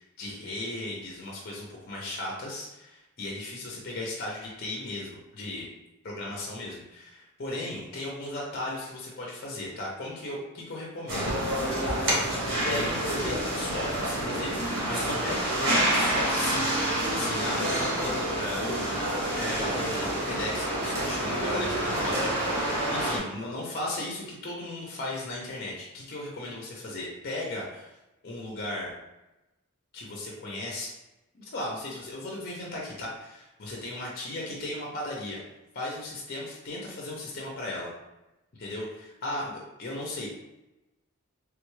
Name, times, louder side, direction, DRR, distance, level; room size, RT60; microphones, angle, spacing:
voice 1, 0.0-5.7 6.0-11.4 12.2-28.0 28.2-29.0 29.9-30.9 31.3-35.4 35.7-37.9 38.6-40.3, left 1 dB, 45° left, -2 dB, 0.5 m, -36 dB
sound 1, 11.1-23.2, right 1 dB, 60° right, 1.0 m, -28 dB
3.3 x 2.2 x 3.1 m, 0.97 s
head